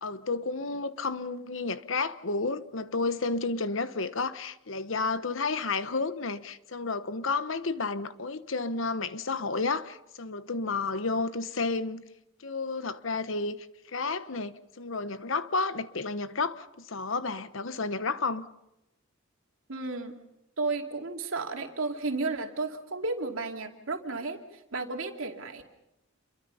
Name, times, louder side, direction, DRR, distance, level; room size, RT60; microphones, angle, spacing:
voice 1, 0.0-12.0 12.4-13.6 13.9-18.5, left 3 dB, 70° left, 1.1 m, -31 dB
voice 2, 19.7-20.1 20.6-25.6, right 3 dB, 80° right, 2.7 m, -33 dB
28.5 x 23.0 x 5.6 m
head